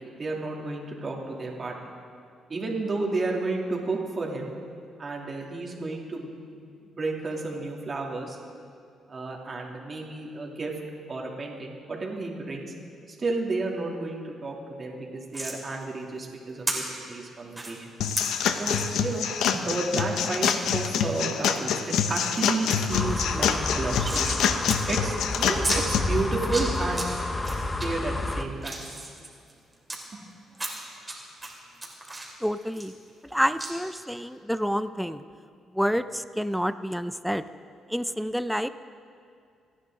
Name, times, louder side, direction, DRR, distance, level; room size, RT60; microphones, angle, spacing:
voice 1, 0.0-1.9 2.5-4.5 5.0-6.6 6.8-8.4 9.1-10.7 11.1-12.7 13.1-17.9 18.6-19.3 19.5-24.4 24.9-27.2 27.8-29.0 30.1-30.2, right 3 dB, 35° right, -1 dB, 2.8 m, -32 dB
sound 1, 15.3-15.6 16.7-16.8 17.5-17.7 18.2-18.3 18.7-18.9 19.3-19.4 19.6-19.7 20.4-20.5 21.0-21.6 22.0-22.4 22.7-22.8 23.1-24.4 24.7-24.8 25.1-25.2 25.6-25.8 26.3-27.1 27.4-27.9 28.3-30.0 30.5-31.1 31.4-33.3 33.6-33.7, right 2 dB, 15° right, 3.3 m, -33 dB
sound 2, 18.0-26.0, left 8 dB, 80° left, 0.8 m, -26 dB
sound 3, 22.9-28.4, left 2 dB, 25° left, 1.0 m, -30 dB
voice 2, 32.4-32.9 33.3-35.2 35.8-37.4 37.9-38.7, equal, ahead, 12 dB, 0.5 m, -28 dB
27.5 x 10.5 x 3.8 m, 2.3 s
cardioid pair, 90°, 0 cm